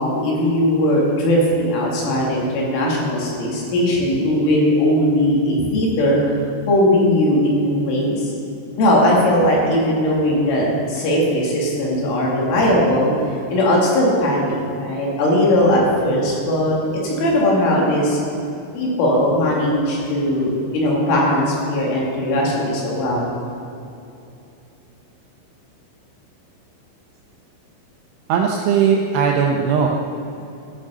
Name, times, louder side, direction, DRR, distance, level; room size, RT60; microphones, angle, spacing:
voice 1, 0.0-6.2 6.7-8.3 8.8-13.1 13.5-16.8 17.0-18.2 18.7-23.3, left 1 dB, 75° left, -4 dB, 4.9 m, -18 dB
voice 2, 28.3-29.9, right 7 dB, 85° right, 1 dB, 2.3 m, -18 dB
13.0 x 7.2 x 6.8 m, 2.7 s
omnidirectional pair, 5.7 m